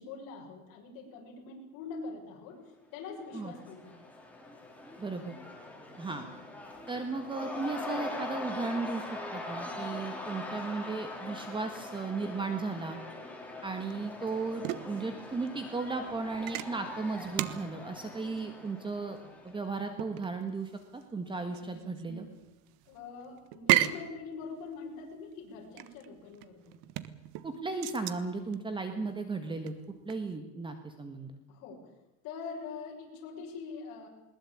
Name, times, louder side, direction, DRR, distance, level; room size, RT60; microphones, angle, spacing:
voice 1, 0.0-4.0 22.9-26.8 31.5-31.9 32.2-34.1, left 4 dB, 55° left, -1 dB, 6.8 m, -44 dB
Cheering / Crowd, 3.1-19.9, left 2 dB, 5° left, 4.2 m, -42 dB
voice 2, 5.0-5.3 6.0-6.3 6.9-13.0 13.6-19.2 19.4-22.3 27.4-29.7 30.0-31.4, right 3 dB, 10° right, 7 dB, 1.6 m, -35 dB
sound 1, 13.8-30.3, right 15 dB, 55° right, 1.4 m, -36 dB
21.0 x 20.0 x 8.7 m, 0.97 s
cardioid pair, 155°, 40 cm